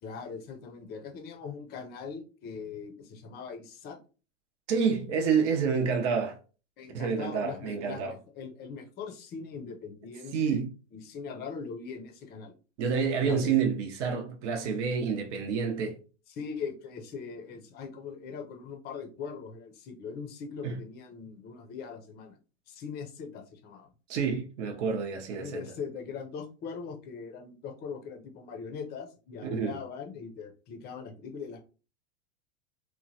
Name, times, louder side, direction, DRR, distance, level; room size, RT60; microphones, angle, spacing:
voice 1, 0.0-4.0 6.8-12.5 13.2-13.6 16.3-22.4 22.7-23.9 25.4-31.6, left 5 dB, 25° left, 0.5 m, -41 dB
voice 2, 4.7-6.4 6.9-8.1 10.3-10.7 12.8-15.9 20.6-20.7 24.1-25.6 29.5-29.7, right 6 dB, 70° right, 0.8 m, -28 dB
3.0 x 2.1 x 2.6 m
supercardioid pair, 130°, 36 cm